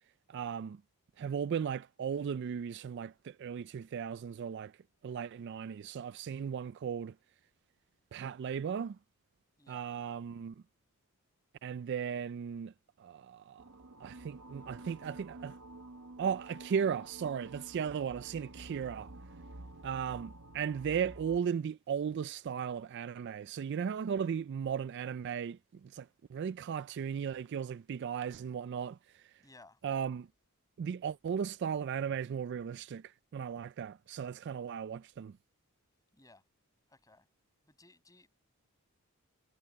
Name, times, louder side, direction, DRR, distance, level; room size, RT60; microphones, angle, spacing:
voice 1, 0.3-0.8 1.2-4.7 5.0-7.2 8.1-9.0 9.7-10.6 11.6-12.7 13.0-13.6 14.0-15.6 16.2-19.1 19.8-29.3 29.8-30.3 30.8-35.4, right 7 dB, 50° right, 0.3 m, -36 dB
sound 1, 13.6-21.4, right 2 dB, 80° right, 1.5 m, -50 dB
voice 2, 29.4-29.8 36.1-36.4 36.9-37.3 37.7-38.3, left 2 dB, 15° left, 7.5 m, -59 dB
head